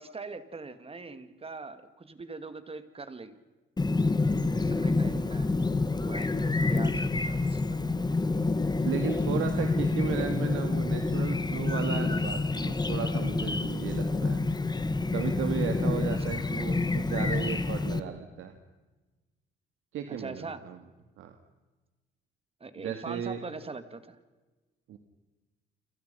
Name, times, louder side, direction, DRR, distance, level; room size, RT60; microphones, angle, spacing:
voice 1, 0.0-3.4 4.5-5.5 6.1-7.6 16.1-16.3 20.1-20.6 22.6-24.2, right 3 dB, 30° right, 11 dB, 2.7 m, -42 dB
Chirp tweet, 3.8-18.0, left 3 dB, 20° left, 1.8 m, -28 dB
voice 2, 8.8-14.4 15.1-18.5 19.9-20.8 21.2-21.3 22.8-23.4 24.9-25.0, right 8 dB, 85° right, 6 dB, 2.4 m, -35 dB
30.0 x 26.5 x 5.7 m, 1.2 s
cardioid pair, 90°, 20 cm